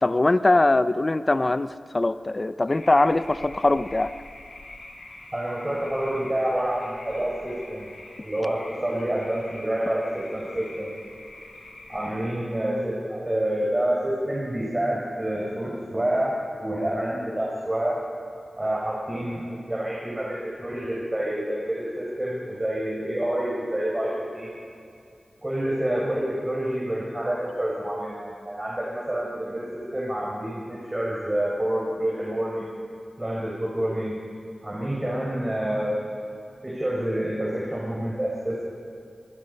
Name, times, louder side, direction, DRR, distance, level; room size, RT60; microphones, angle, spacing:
voice 1, 0.0-4.1, left 2 dB, 40° left, 12 dB, 0.8 m, -21 dB
sound 1, 2.7-12.2, left 2 dB, 80° left, 6.5 m, -44 dB
voice 2, 5.3-7.9 8.2-10.9 11.9-16.3 16.6-18.0 18.6-24.5 25.4-32.7 33.2-34.1 34.6-36.0 36.6-38.6, right 1 dB, 25° right, -3 dB, 5.6 m, -28 dB
27.0 x 21.0 x 5.5 m, 2.6 s
cardioid pair, 50°, 0 cm